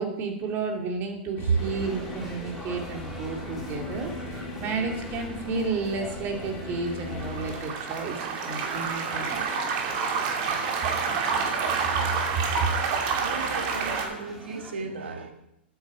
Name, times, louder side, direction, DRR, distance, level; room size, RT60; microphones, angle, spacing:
voice 1, 0.0-9.4 12.6-12.7, right 4 dB, 35° right, 3 dB, 2.6 m, -32 dB
sound 1, 1.4-7.7, left 2 dB, 30° left, 4.2 m, -38 dB
sound 2, 1.6-14.7, equal, 5° right, 3.3 m, -44 dB
sound 3, 6.9-14.0, right 5 dB, 50° right, 2.7 m, -28 dB
voice 2, 13.2-15.3, right 5 dB, 80° right, 5 dB, 1.9 m, -31 dB
12.5 x 9.7 x 5.0 m, 0.82 s
hypercardioid pair, 120°, 6 cm